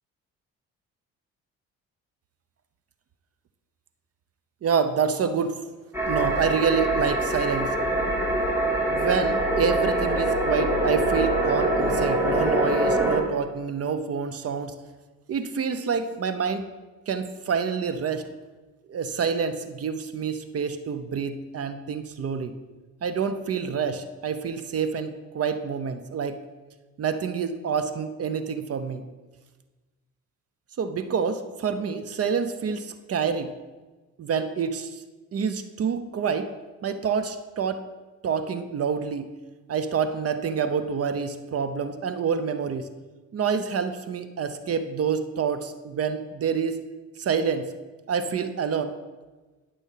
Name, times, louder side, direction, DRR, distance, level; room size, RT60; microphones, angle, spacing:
voice 1, 4.6-5.6 6.1-7.7 8.9-14.7 15.3-16.7 17.1-18.3 18.9-22.5 23.0-26.4 27.0-29.0 30.8-33.5 34.2-35.0 35.3-36.5 36.8-37.8 38.2-39.3 39.7-42.9 43.3-46.8 47.2-47.7 48.1-48.9, right 6 dB, 50° right, 10 dB, 0.8 m, -27 dB
sound 1, 5.9-13.2, right 1 dB, 10° right, 3.4 m, -24 dB
11.0 x 6.9 x 5.7 m, 1.3 s
cardioid pair, 90°, 30 cm